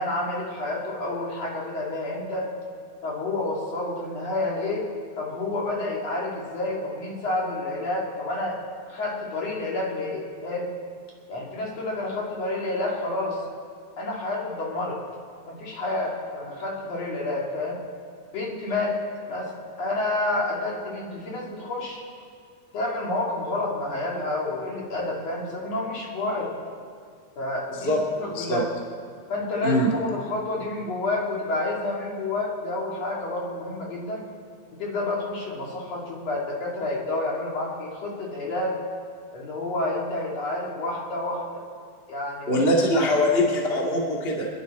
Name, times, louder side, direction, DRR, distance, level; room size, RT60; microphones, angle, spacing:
voice 1, 0.0-2.5 3.0-4.9 5.2-8.6 8.9-10.7 11.3-13.4 14.0-15.0 15.5-17.8 18.3-19.0 19.3-19.5 19.8-22.0 22.7-26.5 27.4-28.7 29.3-34.2 34.8-38.8 39.3-41.6 42.1-42.6 43.0-43.2, left 2 dB, 60° left, -3 dB, 3.4 m, -29 dB
voice 2, 27.8-28.6 29.6-29.9 42.5-44.5, left 1 dB, 25° left, -2 dB, 1.8 m, -23 dB
27.0 x 10.5 x 4.2 m, 2.1 s
omnidirectional pair, 3.4 m